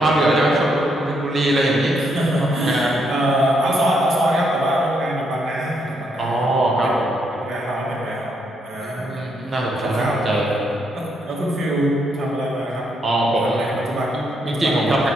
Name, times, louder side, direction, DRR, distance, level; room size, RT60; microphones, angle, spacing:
voice 1, 0.0-1.9 2.6-3.0 6.2-7.1 8.8-10.5 13.0-13.7 14.1-15.1, right 1 dB, 35° right, -3 dB, 1.4 m, -20 dB
voice 2, 2.0-6.5 6.8-7.0 7.3-9.1 9.8-10.6 10.9-12.9 13.3-14.2 14.5-15.1, equal, 55° right, -5 dB, 1.7 m, -23 dB
7.8 x 5.5 x 4.8 m, 2.9 s
cardioid pair, 90°, 0 cm